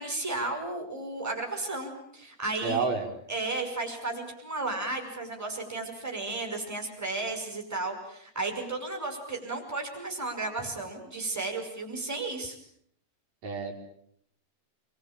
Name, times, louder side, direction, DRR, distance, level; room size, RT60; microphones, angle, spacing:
voice 1, 0.0-2.9 3.3-12.6, right 2 dB, 5° right, 2 dB, 5.3 m, -34 dB
voice 2, 2.6-3.1 13.4-13.8, right 4 dB, 55° right, 1 dB, 6.3 m, -29 dB
28.0 x 22.5 x 9.0 m, 0.70 s
omnidirectional pair, 3.8 m